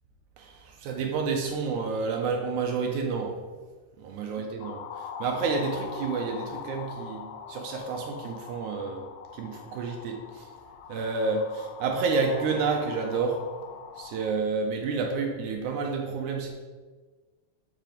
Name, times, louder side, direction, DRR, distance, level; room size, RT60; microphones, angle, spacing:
voice 1, 0.4-3.4 4.0-9.1 9.3-10.5 10.9-13.4 14.0-16.5, right 4 dB, 75° right, 2 dB, 1.9 m, -29 dB
sound 1, 4.6-14.3, left 7 dB, 85° left, 2.2 m, -42 dB
7.5 x 3.3 x 5.0 m, 1.4 s
omnidirectional pair, 4.0 m